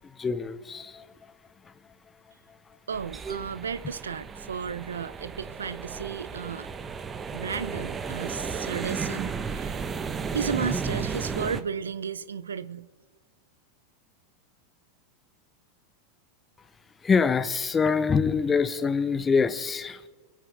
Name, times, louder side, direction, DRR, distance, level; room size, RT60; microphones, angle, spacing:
voice 1, 0.0-1.1 17.0-20.0, left 5 dB, 20° left, 0.9 m, -25 dB
sound 1, 2.9-11.6, right 5 dB, 25° right, 0.9 m, -34 dB
voice 2, 2.9-6.7 7.3-9.8 10.3-12.9, right 6 dB, 85° right, 0.4 m, -34 dB
24.0 x 8.8 x 3.4 m
hypercardioid pair, 90°, 0 cm